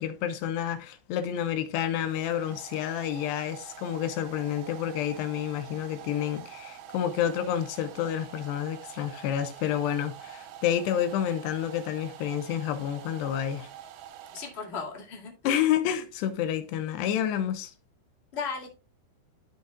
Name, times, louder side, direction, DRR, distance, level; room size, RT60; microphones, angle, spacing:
voice 1, 0.0-13.7 15.4-17.7, left 10 dB, 90° left, 3.0 m, -29 dB
Domestic sounds home sounds, 1.3-15.0, right 10 dB, 85° right, 3.2 m, -46 dB
voice 2, 14.3-15.6 18.3-18.7, left 5 dB, 35° left, 0.9 m, -36 dB
12.5 x 6.6 x 2.3 m
omnidirectional pair, 4.8 m